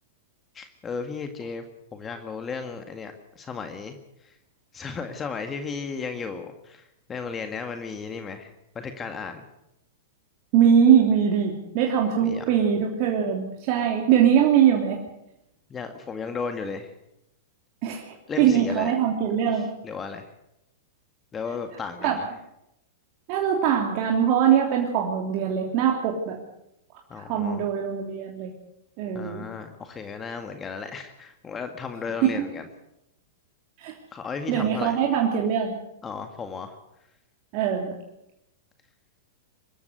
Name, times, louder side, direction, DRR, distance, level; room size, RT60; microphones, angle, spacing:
voice 1, 0.5-1.6 1.9-4.0 4.2-4.3 4.7-9.5 12.2-12.6 15.7-16.9 18.3-18.9 19.5-20.3 21.3-22.3 27.1-27.6 29.1-32.7 34.1-35.0 36.0-36.8, left 5 dB, 20° left, 6 dB, 1.9 m, -35 dB
voice 2, 10.5-15.0 17.8-19.7 22.0-22.2 23.3-26.4 27.2-28.5 29.0-29.5 32.2-32.5 33.8-33.9 34.5-35.8 37.5-37.9, right 8 dB, 45° right, 0 dB, 3.2 m, -22 dB
24.5 x 13.5 x 8.2 m, 0.85 s
hypercardioid pair, 105°, 0 cm